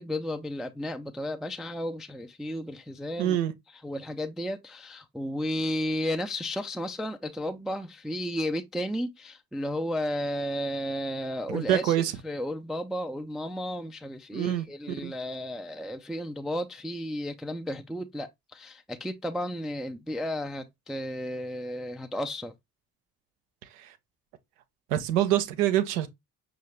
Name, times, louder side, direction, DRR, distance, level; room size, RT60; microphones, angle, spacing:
voice 1, 0.0-3.4 3.8-11.9 12.2-22.5, equal, ahead, 0.4 m, -33 dB
voice 2, 3.2-3.5 11.5-12.1 14.3-14.7 15.0-15.1 23.8-23.9 24.9-26.1, right 12 dB, 80° right, 0.6 m, -25 dB
5.5 x 2.4 x 3.2 m
hypercardioid pair, 40°, 45 cm